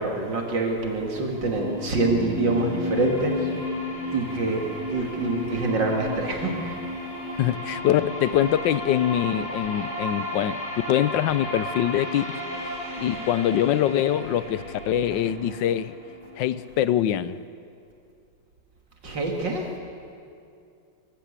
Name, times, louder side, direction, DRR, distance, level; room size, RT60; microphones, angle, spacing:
voice 1, 0.0-3.5 4.1-6.8 15.1-15.2 19.0-19.7, right 3 dB, 70° right, 1 dB, 3.0 m, -26 dB
sound 1, 0.8-16.8, left 1 dB, 40° left, 4.8 m, -33 dB
voice 2, 7.4-12.4 13.0-15.9 16.4-17.4, left 11 dB, 75° left, 15 dB, 1.4 m, -24 dB
25.0 x 14.5 x 8.2 m, 2.4 s
omnidirectional pair, 2.0 m